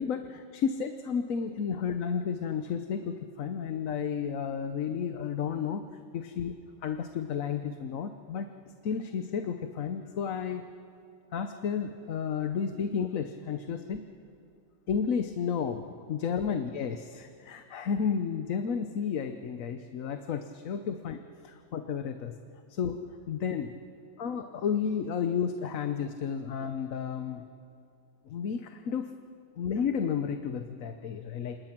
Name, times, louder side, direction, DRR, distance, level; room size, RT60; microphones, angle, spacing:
voice 1, 0.0-5.9 6.1-6.5 6.8-8.5 8.8-10.6 11.3-14.0 14.9-21.2 21.5-22.4 22.7-23.0 23.3-23.7 24.2-27.4 28.3-29.1 29.6-31.6, left 7 dB, 80° left, 7 dB, 1.3 m, -32 dB
28.5 x 27.0 x 6.0 m, 2.5 s
omnidirectional pair, 1.4 m